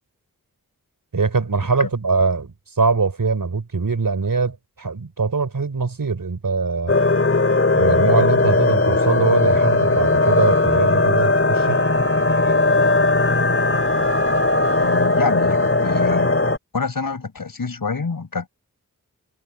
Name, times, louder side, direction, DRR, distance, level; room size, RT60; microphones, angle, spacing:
voice 1, 1.1-6.9 7.7-11.8, right 4 dB, 75° right, 4.2 m, -22 dB
sound 1, 6.9-16.6, left 2 dB, 40° left, 3.1 m, -18 dB
voice 2, 14.8-16.4 16.7-18.5, left 4 dB, 85° left, 5.4 m, -26 dB
wide cardioid pair, 55°, 34 cm